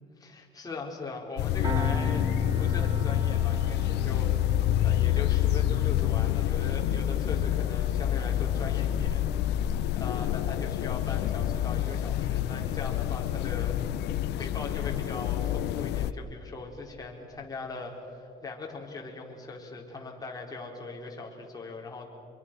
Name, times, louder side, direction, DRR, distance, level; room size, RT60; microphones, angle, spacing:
voice 1, 0.2-2.2 2.6-9.6 10.0-22.1, left 3 dB, 20° left, -1 dB, 4.6 m, -40 dB
sound 1, 1.4-16.1, left 11 dB, 80° left, 0.8 m, -27 dB
Piano, 1.6-12.7, right 5 dB, 25° right, 1.2 m, -45 dB
27.0 x 22.5 x 6.4 m, 2.9 s
cardioid pair, 110°, 17 cm